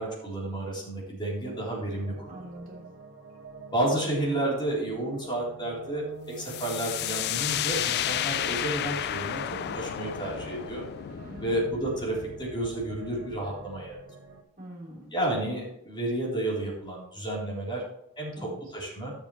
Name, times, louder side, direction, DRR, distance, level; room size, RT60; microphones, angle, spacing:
voice 1, 0.0-2.3 3.7-9.4 9.7-10.8 11.4-14.0 15.1-17.8 18.2-19.1, right 1 dB, 20° left, -4 dB, 3.9 m, -31 dB
sound 1, 1.4-14.4, right 4 dB, 65° right, 1.4 m, -47 dB
voice 2, 2.3-2.8 9.4-9.8 11.1-11.5 14.6-15.1 18.3-18.6, equal, 40° right, -2 dB, 3.4 m, -44 dB
sound 2, 6.4-14.0, left 11 dB, 50° left, 0.3 m, -32 dB
12.0 x 7.3 x 3.2 m, 0.78 s
head